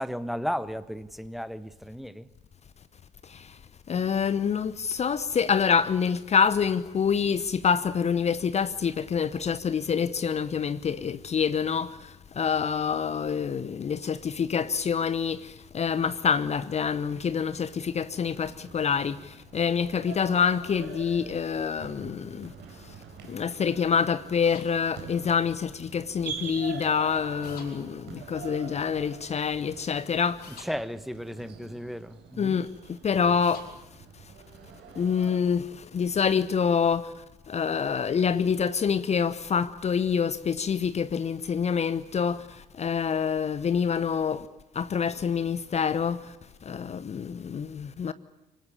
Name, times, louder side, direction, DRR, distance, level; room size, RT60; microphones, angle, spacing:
voice 1, 0.0-2.3 30.6-32.6, equal, ahead, 1.2 m, -34 dB
voice 2, 3.9-11.9 12.4-19.2 19.5-22.5 23.3-30.4 32.4-32.7 33.0-33.6 35.0-35.6 35.9-37.1 37.5-42.4 42.8-44.5 44.8-46.2 46.7-48.1, left 6 dB, 30° left, 0.9 m, -26 dB
sound 1, 17.7-35.4, right 7 dB, 55° right, 4.2 m, -45 dB
sound 2, 24.4-24.7 27.4-27.7 30.4-30.7 33.4-33.7, left 6 dB, 50° left, 5.5 m, -46 dB
25.0 x 18.0 x 9.9 m
figure-of-eight pair, 50°, 21 cm